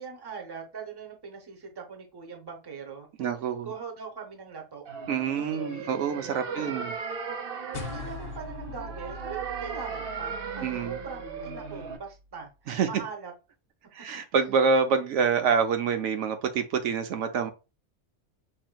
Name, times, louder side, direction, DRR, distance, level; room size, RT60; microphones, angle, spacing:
voice 1, 0.0-3.4 3.6-4.8 5.3-5.9 6.4-6.9 7.9-13.3 14.4-14.5, right 5 dB, 25° right, 0.7 m, -41 dB
voice 2, 3.2-3.7 5.1-6.9 10.6-11.0 12.7-12.9 13.9-17.5, right 6 dB, 90° right, 1.0 m, -26 dB
sound 1, 4.9-12.0, right 5 dB, 60° right, 0.8 m, -37 dB
sound 2, 7.7-12.4, left 3 dB, 70° left, 0.8 m, -42 dB
5.4 x 2.7 x 2.2 m
omnidirectional pair, 1.2 m